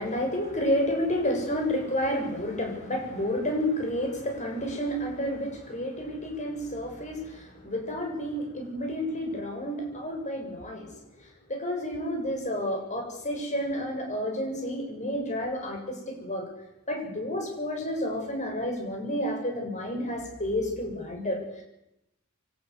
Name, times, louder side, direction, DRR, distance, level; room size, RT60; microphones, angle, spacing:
voice 1, 0.0-10.9 11.5-16.4 16.9-21.6, equal, 35° left, 2 dB, 7.7 m, -30 dB
24.5 x 18.5 x 8.3 m, 0.85 s
head